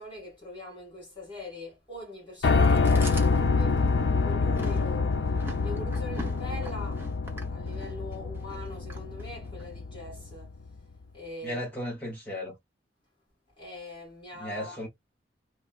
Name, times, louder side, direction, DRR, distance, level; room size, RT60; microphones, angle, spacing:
voice 1, 0.0-3.8 4.2-5.2 5.6-10.5 11.1-11.6 13.6-14.8, left 2 dB, 25° left, 1.8 m, -42 dB
Piano, 2.4-10.4, left 4 dB, 90° left, 0.5 m, -26 dB
Chewing mastication, 2.6-9.7, right 1 dB, 10° right, 0.8 m, -44 dB
voice 2, 11.4-12.5 14.3-14.9, left 1 dB, 10° left, 1.1 m, -35 dB
3.1 x 2.2 x 2.4 m
head